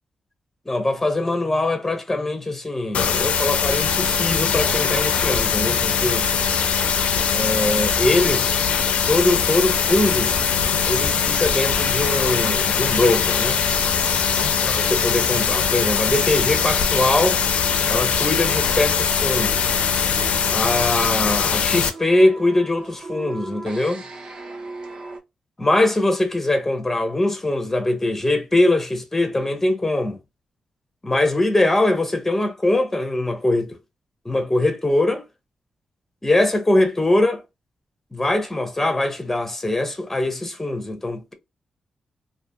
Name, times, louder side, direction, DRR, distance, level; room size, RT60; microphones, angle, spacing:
voice 1, 0.7-6.3 7.3-8.6 9.1-10.3 10.9-13.6 14.6-17.4 17.9-19.6 20.5-24.0 25.6-30.2 31.0-33.8 34.3-35.2 36.2-37.4 38.1-41.3, left 2 dB, 15° left, 0.5 m, -22 dB
sound 1, 2.9-21.9, left 6 dB, 80° left, 0.4 m, -21 dB
sound 2, 19.8-25.2, right 3 dB, 50° right, 0.7 m, -38 dB
2.4 x 2.4 x 2.5 m
wide cardioid pair, 140°, 2 cm